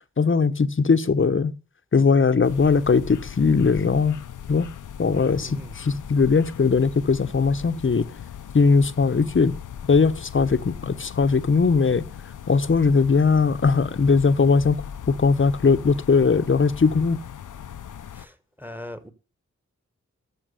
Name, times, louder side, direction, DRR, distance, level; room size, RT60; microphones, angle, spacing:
voice 1, 0.2-1.5 1.9-4.2 4.5-4.7 5.0-8.1 8.5-9.6 9.9-12.0 12.5-14.8 15.1-17.2, left 5 dB, 40° left, 0.9 m, -20 dB
sound 1, 2.4-18.3, left 8 dB, 85° left, 0.7 m, -39 dB
voice 2, 5.4-5.8 18.1-19.1, equal, 5° right, 1.4 m, -39 dB
13.5 x 6.0 x 6.8 m
wide cardioid pair, 85°, 30 cm